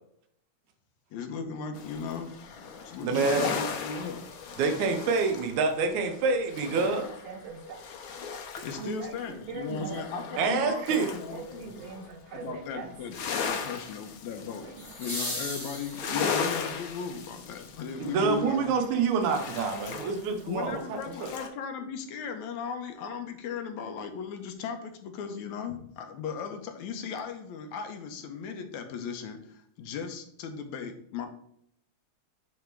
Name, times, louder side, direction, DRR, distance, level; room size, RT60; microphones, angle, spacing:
voice 1, 1.1-2.3 2.8-4.2 8.6-11.8 12.3-13.2 13.4-14.7 15.0-18.7 20.5-31.3, left 6 dB, 80° left, 6 dB, 2.3 m, -37 dB
sound 1, 1.7-9.0 9.3-12.1 12.4-21.5, left 6 dB, 65° left, 1.3 m, -37 dB
voice 2, 3.0-3.6 4.6-7.1 10.4-11.1 18.0-21.3, right 4 dB, 80° right, 6 dB, 2.4 m, -27 dB
voice 3, 6.8-7.9 8.7-10.5 10.9-12.9 13.6-13.8 14.3-14.9 16.0-16.2, right 5 dB, 65° right, 1 dB, 1.9 m, -41 dB
sound 2, 9.2-9.3 14.8-16.6 18.7-18.8, left 1 dB, 40° left, 0.4 m, -37 dB
8.8 x 3.6 x 4.5 m, 0.69 s
omnidirectional pair, 3.4 m